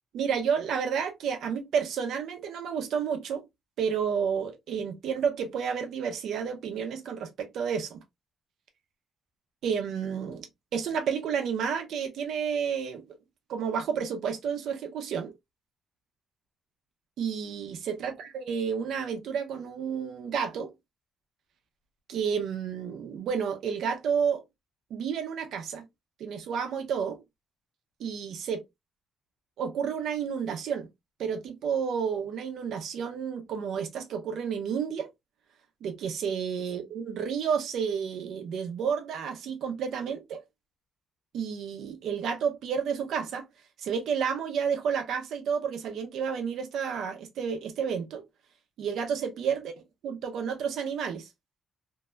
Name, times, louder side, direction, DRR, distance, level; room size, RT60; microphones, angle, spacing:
voice 1, 0.1-3.5 3.8-8.0 9.6-10.5 10.7-13.0 13.5-15.3 17.2-20.7 22.1-24.4 24.9-25.8 26.2-27.2 28.0-28.6 29.6-30.9 31.2-35.1 35.8-40.4 41.3-43.5 43.8-48.2 48.8-49.7 50.0-51.3, right 7 dB, 75° right, 0.6 m, -31 dB
2.6 x 2.0 x 2.3 m
cardioid pair, 90°, 0 cm